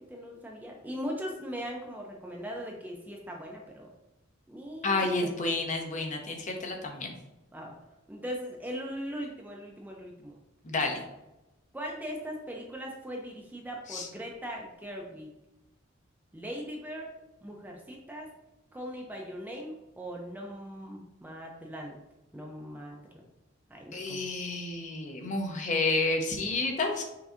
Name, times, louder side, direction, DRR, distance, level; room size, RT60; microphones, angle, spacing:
voice 1, 0.1-3.9 4.5-5.3 7.5-7.8 8.1-10.4 11.7-15.3 16.3-17.1 17.4-18.3 18.7-22.0 22.3-23.2 23.7-24.2, equal, 10° right, 0 dB, 0.4 m, -40 dB
voice 2, 4.8-7.1 10.6-11.0 13.9-14.1 23.9-27.0, left 3 dB, 40° left, 2 dB, 0.6 m, -30 dB
5.5 x 2.6 x 2.5 m, 0.96 s
head